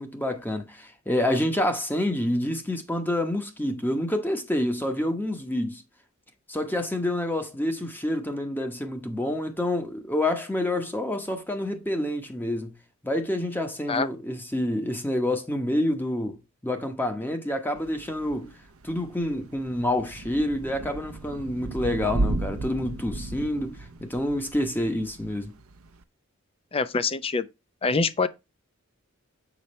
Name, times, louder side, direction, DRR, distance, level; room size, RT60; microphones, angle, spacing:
voice 1, 0.0-5.8 6.5-12.7 13.0-16.4 16.6-18.5 18.8-25.5, left 1 dB, 10° left, 0.9 m, -28 dB
Thunder / Rain, 17.8-26.0, right 2 dB, 75° right, 0.8 m, -34 dB
voice 2, 26.7-27.5 27.8-28.3, left 4 dB, 25° left, 0.5 m, -25 dB
7.0 x 5.5 x 3.1 m
head